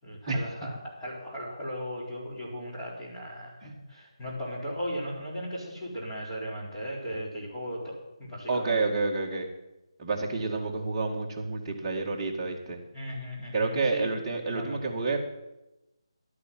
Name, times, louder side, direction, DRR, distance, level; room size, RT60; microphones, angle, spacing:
voice 1, 0.0-8.8 12.9-14.1 14.4-14.8, equal, 10° left, -8 dB, 4.4 m, -37 dB
voice 2, 8.5-9.5 10.0-12.8 13.5-15.2, right 3 dB, 15° right, -4 dB, 2.1 m, -29 dB
11.5 x 10.0 x 7.8 m, 0.95 s
figure-of-eight pair, 165°, 3 cm